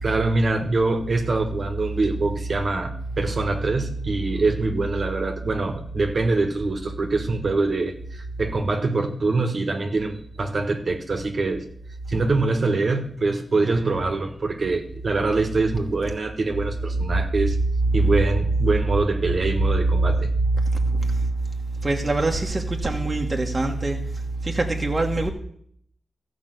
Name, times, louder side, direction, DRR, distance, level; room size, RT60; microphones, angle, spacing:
voice 1, 0.0-11.6 12.1-17.6 17.9-20.3, right 3 dB, 50° right, 1.4 m, -24 dB
voice 2, 20.5-21.3 21.8-24.0 24.4-25.3, right 2 dB, 30° right, 1.3 m, -23 dB
14.0 x 5.1 x 7.9 m
cardioid pair, 75°, 0 cm